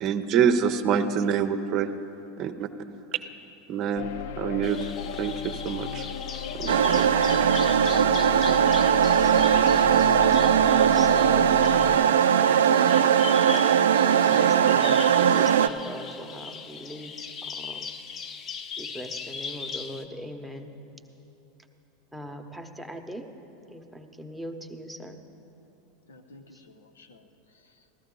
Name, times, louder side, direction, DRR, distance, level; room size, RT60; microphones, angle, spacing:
voice 1, 0.0-1.9 2.4-2.7 3.1-3.2 3.7-4.9 5.2-6.1 6.5-7.1, right 7 dB, 50° right, 9 dB, 0.7 m, -26 dB
sound 1, 4.0-12.0, left 8 dB, 65° left, 0.4 m, -35 dB
Bird vocalization bird call bird song, 4.6-20.0, left 5 dB, 40° left, 0.7 m, -39 dB
sound 2, 6.7-15.7, right 8 dB, 80° right, 0.3 m, -20 dB
voice 2, 10.6-12.9 14.1-17.1 17.4-17.9 18.8-20.7 22.1-23.2 23.7-25.2 26.3-26.6, equal, ahead, 3 dB, 1.0 m, -41 dB
voice 3, 26.1-28.0, left 2 dB, 85° left, 6 dB, 0.8 m, -54 dB
15.0 x 13.5 x 3.9 m, 2.9 s
hypercardioid pair, 90°, 0 cm